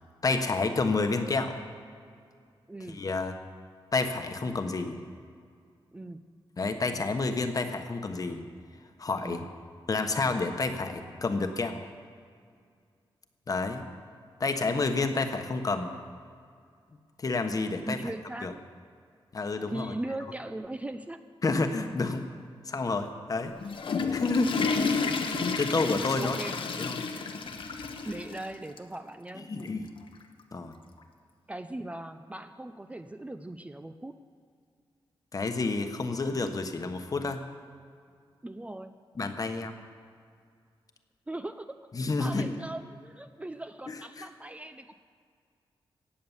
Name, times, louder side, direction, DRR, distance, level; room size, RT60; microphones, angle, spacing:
voice 1, 0.2-1.6 2.9-3.4 3.9-5.0 6.6-8.4 9.0-9.4 9.9-11.8 13.5-13.8 14.4-15.9 17.2-18.0 18.4-18.5 19.3-19.9 21.4-22.3 22.6-23.5 24.1-24.6 25.3-26.4 26.8-27.0 29.5-29.9 30.5-30.7 35.3-37.4 39.2-39.7 41.9-42.5 43.9-44.3, left 3 dB, 40° left, 7 dB, 1.2 m, -29 dB
voice 2, 2.7-3.0 5.9-6.4 9.2-9.5 17.9-18.6 19.7-21.2 26.2-26.7 28.0-29.5 31.5-34.2 38.4-38.9 41.3-41.9 42.2-44.9, right 1 dB, 15° right, 9 dB, 0.5 m, -39 dB
Water / Toilet flush, 23.5-28.5 28.8-28.9 29.6-29.7 31.0-31.1, left 4 dB, 65° left, 1.1 m, -31 dB
17.5 x 8.5 x 7.3 m, 2.2 s
wide cardioid pair, 115°, 9 cm